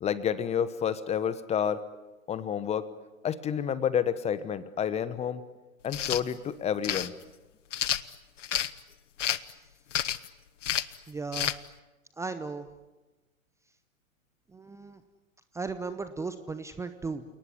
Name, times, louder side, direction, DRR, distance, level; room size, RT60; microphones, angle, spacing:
voice 1, 0.0-1.8 2.3-2.9 3.2-5.4 5.8-7.1, left 8 dB, 15° left, 16 dB, 1.1 m, -29 dB
sound 1, 5.8-6.2 6.8-7.1 7.7-8.7 9.2-9.5 9.9-10.3 10.6-10.9 11.3-11.6, left 10 dB, 60° left, 1.2 m, -29 dB
voice 2, 11.1-11.5 12.2-12.7 14.5-15.0 15.5-17.2, right 4 dB, 5° right, 11 dB, 0.9 m, -36 dB
29.0 x 19.5 x 9.9 m, 1.1 s
figure-of-eight pair, 110°, 41 cm